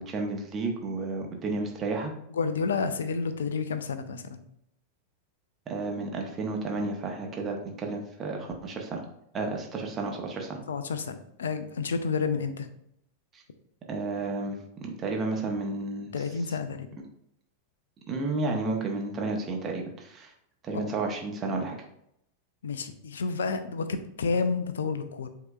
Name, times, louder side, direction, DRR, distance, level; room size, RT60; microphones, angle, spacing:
voice 1, 0.0-2.1 5.7-9.0 9.3-10.6 13.9-14.6 14.8-16.1 18.1-20.3 20.6-21.8, right 3 dB, 25° right, 1 dB, 0.9 m, -32 dB
voice 2, 2.3-4.4 10.7-12.7 16.1-16.9 20.7-20.9 22.6-25.3, left 5 dB, 65° left, 10 dB, 0.4 m, -30 dB
7.7 x 2.9 x 2.4 m, 0.76 s
figure-of-eight pair, 90°, 0 cm